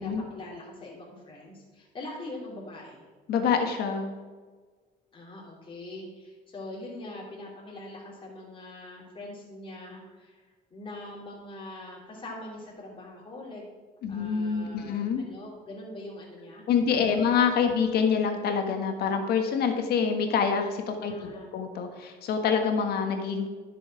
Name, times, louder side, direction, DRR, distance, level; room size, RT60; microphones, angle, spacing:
voice 1, 0.0-3.0 5.1-13.6 14.1-17.1 21.0-21.5, left 1 dB, 30° left, -4 dB, 2.9 m, -43 dB
voice 2, 3.3-4.1 14.0-15.2 16.7-23.5, left 6 dB, 70° left, 5 dB, 1.6 m, -26 dB
10.5 x 6.9 x 4.9 m, 1.4 s
cardioid pair, 110°, 17 cm